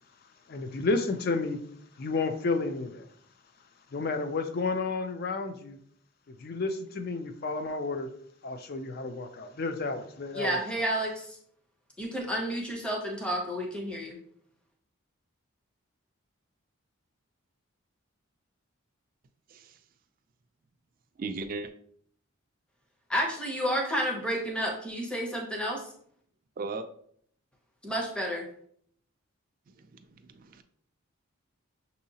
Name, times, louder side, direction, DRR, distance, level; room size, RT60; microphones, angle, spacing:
voice 1, 0.5-1.6 2.0-3.1 3.9-5.8 6.3-8.1 8.4-10.6, left 3 dB, 45° left, 9 dB, 0.4 m, -31 dB
voice 2, 10.3-11.4 12.0-14.2 23.1-25.8 27.8-28.5, equal, 5° left, 0 dB, 0.6 m, -31 dB
voice 3, 21.2-21.7 26.6-26.9 29.8-30.6, right 3 dB, 40° right, 8 dB, 0.3 m, -37 dB
6.2 x 2.8 x 2.7 m, 0.64 s
head